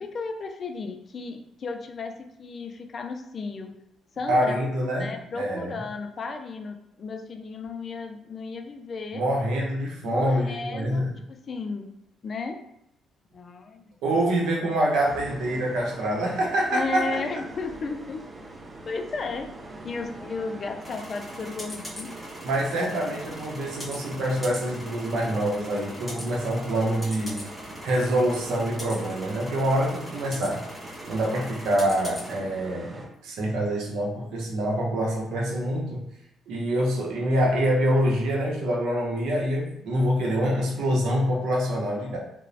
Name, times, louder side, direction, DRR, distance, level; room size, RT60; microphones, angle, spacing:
voice 1, 0.0-3.7 4.2-4.6 4.8-9.2 10.0-11.9 12.2-12.6 13.3-14.2 16.7-18.3 18.9-19.5 19.8-22.2, left 4 dB, 45° left, 6 dB, 0.3 m, -34 dB
voice 2, 4.3-5.1 5.3-5.8 9.1-11.1 14.0-17.2 22.4-27.4 27.8-30.6 31.1-36.0 36.5-42.2, right 1 dB, 80° right, -1 dB, 0.7 m, -25 dB
sound 1, 15.0-33.1, right 2 dB, 40° right, 0.5 m, -42 dB
sound 2, 20.8-32.4, left 1 dB, 10° left, 1.4 m, -42 dB
2.9 x 2.0 x 2.6 m, 0.78 s
cardioid pair, 90°, 0 cm